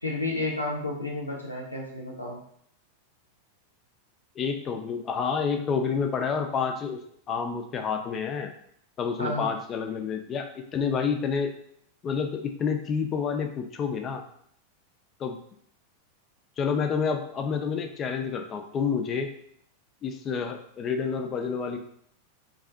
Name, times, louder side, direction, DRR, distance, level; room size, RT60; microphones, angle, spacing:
voice 1, 0.0-2.4 9.2-9.5, left 2 dB, 85° left, -2 dB, 0.6 m, -31 dB
voice 2, 4.4-7.0 7.3-8.5 9.0-11.5 12.0-14.2 15.2-15.4 16.6-19.3 20.0-21.8, left 6 dB, 30° left, 5 dB, 0.3 m, -29 dB
2.5 x 2.3 x 2.3 m, 0.66 s
figure-of-eight pair, 90°, 0 cm